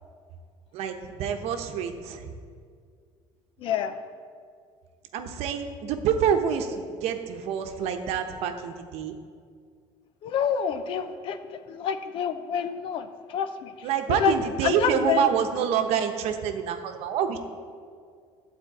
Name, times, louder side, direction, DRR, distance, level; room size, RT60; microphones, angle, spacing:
voice 1, 0.7-2.3 5.1-9.2 13.8-17.4, right 8 dB, 70° right, 6 dB, 0.9 m, -27 dB
voice 2, 3.6-4.0 10.2-13.9 14.2-14.4 14.6-15.3, left 8 dB, 50° left, 10 dB, 0.6 m, -28 dB
12.0 x 4.4 x 8.1 m, 2.1 s
cardioid pair, 155°, 11 cm